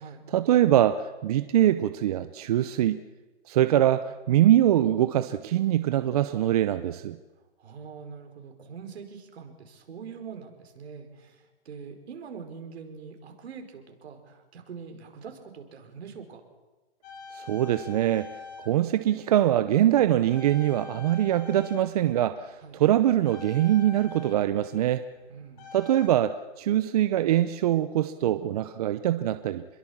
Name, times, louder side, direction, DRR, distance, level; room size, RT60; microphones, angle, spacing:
voice 1, 0.3-3.0 3.5-7.2 17.3-18.3 18.7-25.0 25.7-29.6, right 12 dB, 35° right, 11 dB, 0.7 m, -23 dB
voice 2, 7.6-16.4 22.6-22.8 25.3-25.8, right 6 dB, 60° right, 5 dB, 5.2 m, -43 dB
sound 1, 17.0-20.0 20.3-26.1, left 4 dB, 40° left, 6.0 m, -46 dB
28.0 x 22.0 x 7.3 m, 1.2 s
hypercardioid pair, 155°, 35 cm